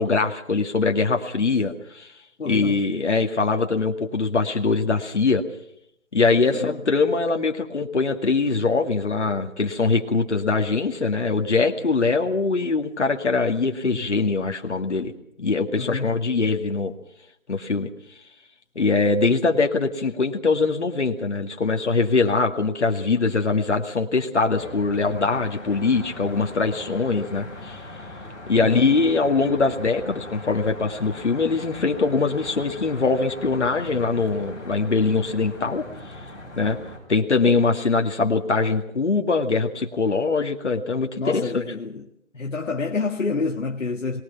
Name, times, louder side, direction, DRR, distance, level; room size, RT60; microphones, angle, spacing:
voice 1, 0.0-2.1 2.5-5.4 6.1-15.1 15.4-16.9 17.5-17.9 18.8-27.8 28.5-35.8 36.6-36.8 37.1-41.6, left 4 dB, 60° left, 2.3 m, -22 dB
voice 2, 2.4-2.8 6.5-6.8 15.8-16.1 28.6-29.0 41.2-42.1 42.3-44.2, left 4 dB, 80° left, 1.9 m, -28 dB
Traffic noise roadway noise, 24.5-37.0, left 2 dB, ahead, 3.9 m, -40 dB
23.5 x 19.5 x 5.9 m
figure-of-eight pair, 175°, 38 cm